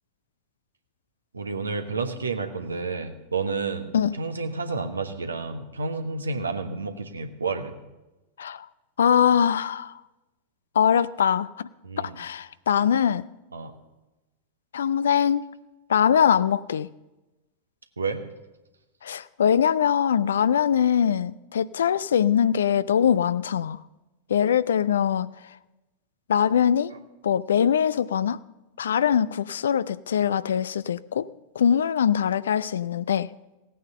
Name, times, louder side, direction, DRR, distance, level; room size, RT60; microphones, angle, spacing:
voice 1, 1.3-7.7 11.8-12.2 13.5-13.7 18.0-18.2 26.9-27.0, right 4 dB, 75° right, 7 dB, 1.2 m, -30 dB
voice 2, 9.0-9.9 10.7-11.7 12.0-13.2 14.7-15.4 15.9-16.9 19.0-23.8 24.3-25.3 26.3-26.9 27.2-28.4 28.8-31.3 31.6-33.3, left 8 dB, 65° left, 17 dB, 0.4 m, -22 dB
16.5 x 9.3 x 6.7 m, 1.0 s
figure-of-eight pair, 90°, 0 cm